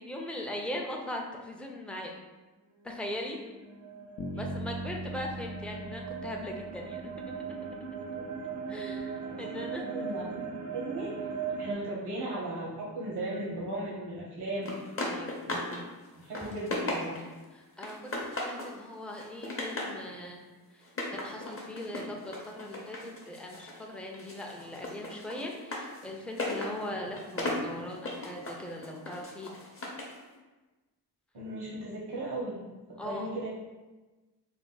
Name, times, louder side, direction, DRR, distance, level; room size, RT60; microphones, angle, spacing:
voice 1, 0.0-2.1 2.8-3.4 4.4-7.3 8.7-10.2 11.5-11.6 15.0-15.3 17.5-20.4 20.7-29.6 33.0-33.3, left 1 dB, 5° left, 0 dB, 0.5 m, -40 dB
sound 1, 3.3-11.7, right 5 dB, 45° right, 0.5 m, -39 dB
Bass guitar, 4.2-8.1, right 1 dB, 85° left, 0.6 m, -40 dB
voice 2, 9.2-11.1 11.6-14.7 15.4-15.7 16.1-17.2 31.3-32.7 33.0-33.5, right 1 dB, 80° right, -6 dB, 1.0 m, -37 dB
sound 2, 14.6-15.8 16.1-17.4 17.8-18.7 19.1-20.0 20.8-23.8 24.1-30.2, left 2 dB, 35° left, 0.8 m, -37 dB
3.5 x 2.1 x 3.9 m, 1.2 s
wide cardioid pair, 60°, 39 cm